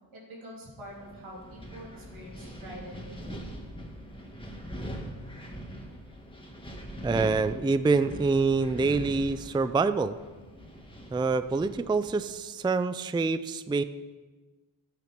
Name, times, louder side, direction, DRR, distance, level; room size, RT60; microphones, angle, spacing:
voice 1, 0.1-3.7, equal, 85° right, -4 dB, 3.6 m, -46 dB
Wind, 0.8-12.3, equal, 10° left, 1.9 m, -42 dB
voice 2, 7.0-10.2 11.1-13.8, right 4 dB, 10° right, 13 dB, 0.3 m, -26 dB
13.0 x 9.0 x 5.2 m, 1.3 s
wide cardioid pair, 70°, 47 cm